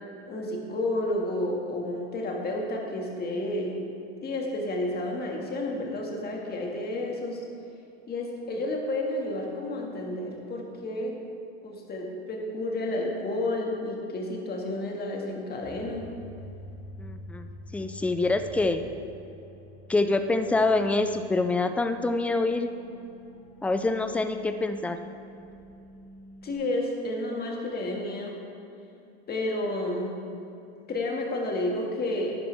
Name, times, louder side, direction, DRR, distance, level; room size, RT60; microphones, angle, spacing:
voice 1, 0.3-3.8 4.2-7.4 8.1-11.2 11.6-16.1 26.4-28.4 29.3-30.1 30.9-32.4, left 1 dB, 30° left, 0 dB, 2.0 m, -31 dB
sound 1, 15.6-26.5, left 1 dB, 55° left, 2.2 m, -47 dB
voice 2, 17.0-18.8 19.9-22.7 23.6-25.0, left 2 dB, 5° left, 9 dB, 0.3 m, -26 dB
11.0 x 10.0 x 3.5 m, 2.7 s
supercardioid pair, 115°, 34 cm